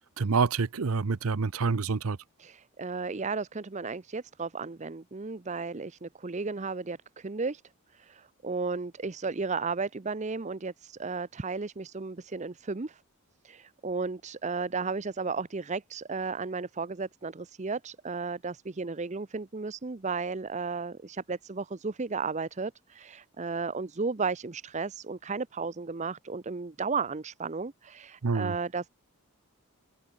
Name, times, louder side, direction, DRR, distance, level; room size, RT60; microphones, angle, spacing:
voice 1, 0.2-2.2 28.2-28.6, right 4 dB, 75° right, 0.7 m, -27 dB
voice 2, 2.4-7.6 7.9-13.0 13.4-28.9, right 4 dB, 30° right, 0.6 m, -34 dB
head